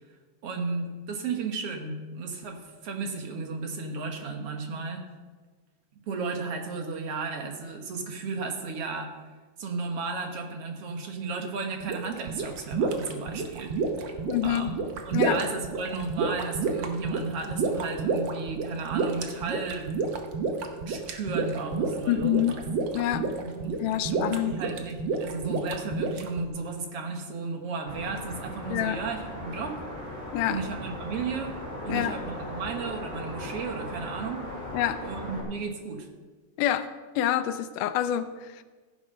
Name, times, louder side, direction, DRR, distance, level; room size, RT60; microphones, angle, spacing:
voice 1, 0.4-5.1 6.1-9.1 9.6-13.7 14.4-14.8 15.1-20.0 20.9-22.6 23.4-29.8 30.5-31.5 31.8-34.5 35.0-36.1, right 4 dB, 55° right, 4 dB, 2.1 m, -34 dB
sound 1, 11.8-26.5, right 4 dB, 85° right, 1.0 m, -30 dB
voice 2, 14.3-14.7 15.1-15.4 22.1-22.6 22.9-23.3 23.8-24.6 28.7-29.0 30.3-30.6 31.9-32.2 34.7-35.0 36.6-36.9 37.2-38.6, left 12 dB, 85° left, 11 dB, 2.2 m, -27 dB
sound 2, 27.9-35.4, left 1 dB, 5° right, 3.5 m, -38 dB
15.5 x 9.2 x 5.5 m, 1.4 s
omnidirectional pair, 3.6 m